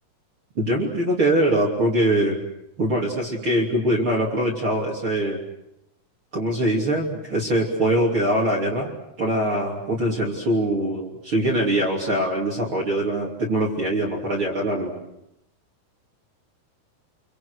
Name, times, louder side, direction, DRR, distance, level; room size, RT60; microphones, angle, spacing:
voice 1, 0.6-2.4 2.8-5.4 6.3-8.9 9.2-14.9, right 1 dB, 35° right, -2 dB, 3.5 m, -23 dB
28.5 x 24.5 x 6.5 m, 0.80 s
omnidirectional pair, 4.6 m